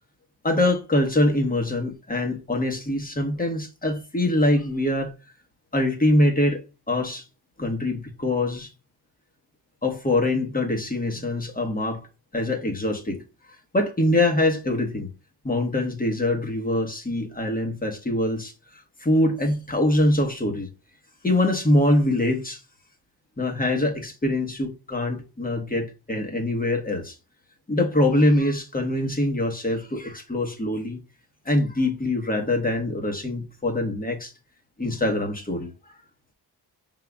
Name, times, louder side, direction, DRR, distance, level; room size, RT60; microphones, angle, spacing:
voice 1, 0.4-5.1 5.7-6.6 6.9-7.2 7.6-8.7 9.8-12.1 12.3-13.2 13.5-15.1 15.4-20.7 21.2-22.6 23.4-27.2 27.7-31.0 31.4-34.3 34.8-35.7, left 1 dB, 20° left, 1.3 m, -24 dB
5.6 x 3.8 x 2.3 m
cardioid pair, 70°, 42 cm